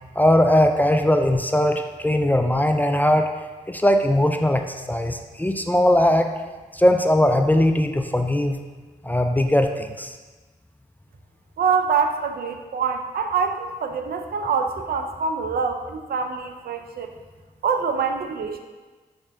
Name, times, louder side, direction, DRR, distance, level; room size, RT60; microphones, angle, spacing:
voice 1, 0.2-3.3 3.7-6.3 6.7-8.6 9.0-10.1, left 1 dB, 10° left, 5 dB, 0.3 m, -19 dB
voice 2, 11.6-17.1 17.6-18.6, right 5 dB, 65° right, 5 dB, 0.4 m, -25 dB
4.1 x 3.3 x 2.6 m, 1.3 s
supercardioid pair, 40°, 17 cm